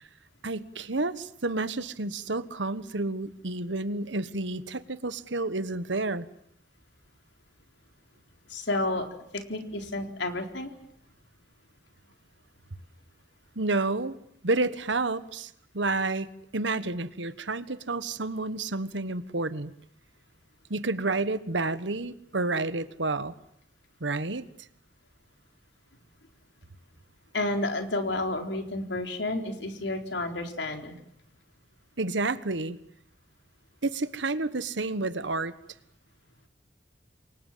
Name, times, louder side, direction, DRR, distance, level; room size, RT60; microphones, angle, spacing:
voice 1, 0.4-6.3 13.5-14.2 14.4-16.3 16.5-19.7 20.7-23.3 24.0-24.4 32.0-32.8 33.8-35.5, right 2 dB, 80° right, 14 dB, 1.4 m, -30 dB
voice 2, 8.5-9.1 9.3-10.7 27.3-31.0, left 2 dB, 75° left, 5 dB, 4.0 m, -31 dB
28.5 x 24.0 x 7.5 m, 0.75 s
head